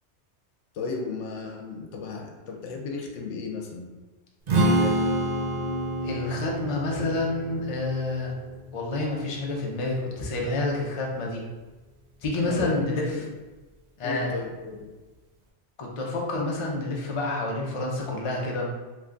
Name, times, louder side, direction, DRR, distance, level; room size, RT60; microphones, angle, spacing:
voice 1, 0.7-3.9 4.6-5.2 12.4-13.2 14.0-14.9, left 4 dB, 85° left, 1 dB, 0.9 m, -34 dB
Strum, 4.5-10.7, right 1 dB, 55° right, 0.5 m, -28 dB
voice 2, 6.0-8.3 8.7-11.4 12.2-13.1 14.0-14.3 15.8-18.7, left 2 dB, 40° left, -2 dB, 0.5 m, -28 dB
3.0 x 2.3 x 3.7 m, 1.2 s
omnidirectional pair, 1.2 m